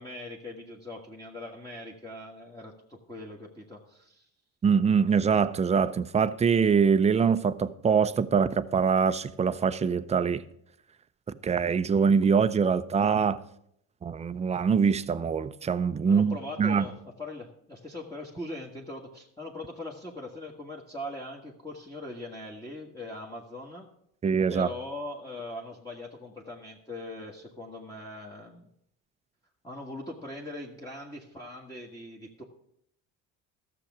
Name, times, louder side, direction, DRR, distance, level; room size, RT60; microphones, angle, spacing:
voice 1, 0.0-4.3 16.0-23.9 24.5-28.7 29.6-32.4, left 1 dB, 10° left, 1.5 m, -41 dB
voice 2, 4.6-10.4 11.4-13.4 14.0-16.8 24.2-24.7, right 6 dB, 20° right, 0.5 m, -24 dB
13.5 x 7.0 x 6.1 m
supercardioid pair, 100°, 33 cm